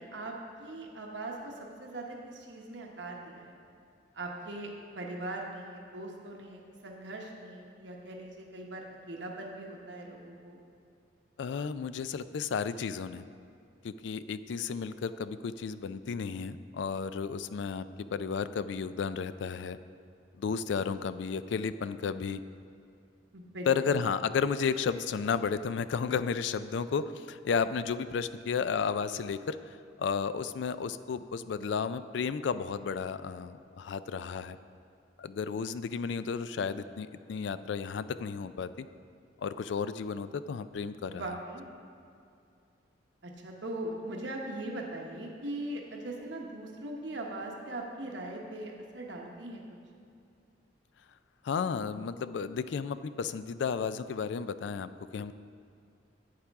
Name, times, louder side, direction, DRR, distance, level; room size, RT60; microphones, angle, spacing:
voice 1, 0.0-3.6 4.1-10.6 23.3-23.9 41.1-41.6 43.2-49.6, right 1 dB, 75° right, 0 dB, 1.1 m, -40 dB
voice 2, 11.4-13.3 13.8-19.8 20.4-22.4 23.7-34.6 35.2-38.9 39.4-41.2 51.4-55.3, left 6 dB, 75° left, 13 dB, 0.3 m, -33 dB
11.5 x 8.8 x 3.5 m, 2.5 s
head